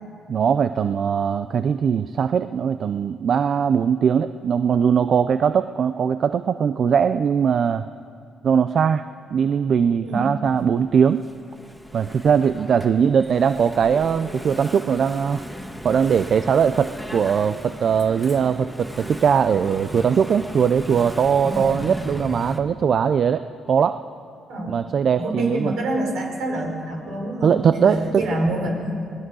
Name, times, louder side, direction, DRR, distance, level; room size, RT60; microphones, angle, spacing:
voice 1, 0.3-7.9 8.4-9.0 9.3-11.2 11.9-15.4 15.8-24.0 24.7-25.7 27.4-28.2, right 7 dB, 55° right, 11 dB, 0.6 m, -20 dB
Engine / Mechanisms, 10.4-22.6, equal, ahead, 1.8 m, -36 dB
voice 2, 21.4-21.8 24.5-24.7 25.2-29.1, right 1 dB, 75° right, 1 dB, 5.4 m, -26 dB
27.0 x 19.0 x 6.3 m, 2.3 s
cardioid pair, 90°, 0 cm